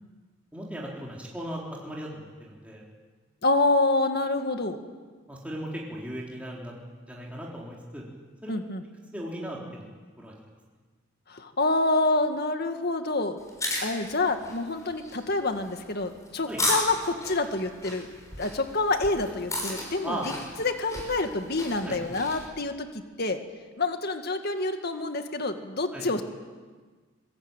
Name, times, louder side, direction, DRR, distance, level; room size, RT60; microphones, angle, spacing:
voice 1, 0.5-2.8 5.3-6.7 7.1-8.0 8.4-8.5 9.1-9.9 10.2-10.3 16.5-16.6 20.0-20.3 21.8-22.0 25.9-26.1, right 1 dB, 5° right, -4 dB, 4.0 m, -37 dB
voice 2, 3.4-4.8 8.5-8.8 11.3-13.4 13.8-18.1 18.4-20.2 20.6-22.9 23.2-23.4 23.8-26.2, left 2 dB, 50° left, 6 dB, 2.1 m, -27 dB
sound 1, 13.4-22.5, left 1 dB, 15° left, 6.6 m, -35 dB
25.0 x 22.5 x 9.1 m, 1.4 s
head